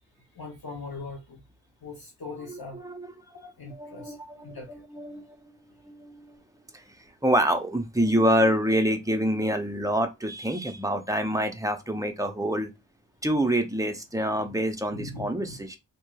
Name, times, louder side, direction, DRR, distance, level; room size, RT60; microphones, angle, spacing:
voice 1, 0.3-1.4 1.8-2.9 3.2-4.8 14.9-15.6, left 3 dB, 60° left, 0.8 m, -41 dB
voice 2, 2.5-3.1 3.7-5.5 5.8-6.4 6.7-6.8 7.2-12.7 13.2-15.8, equal, 10° right, 0.5 m, -27 dB
3.0 x 2.7 x 2.3 m
wide cardioid pair, 55°, 42 cm